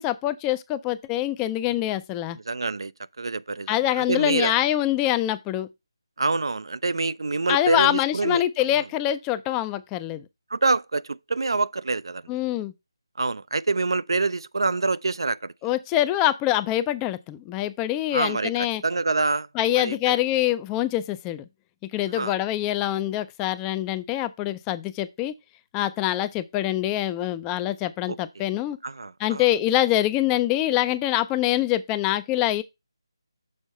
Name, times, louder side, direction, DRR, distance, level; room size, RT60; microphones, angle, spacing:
voice 1, 0.0-2.4 3.7-5.7 7.5-10.3 12.3-12.7 15.6-18.8 19.5-21.4 21.9-25.3 25.7-28.8 29.2-32.6, left 14 dB, 10° left, 0.3 m, -25 dB
voice 2, 2.5-2.9 3.2-4.5 6.2-8.4 10.5-12.2 13.2-15.5 18.1-18.5 18.8-19.5 19.8-20.2 22.1-22.3 28.1-28.2 28.8-29.4, right 3 dB, 70° right, 0.4 m, -26 dB
6.4 x 4.4 x 5.2 m
figure-of-eight pair, 160°, 3 cm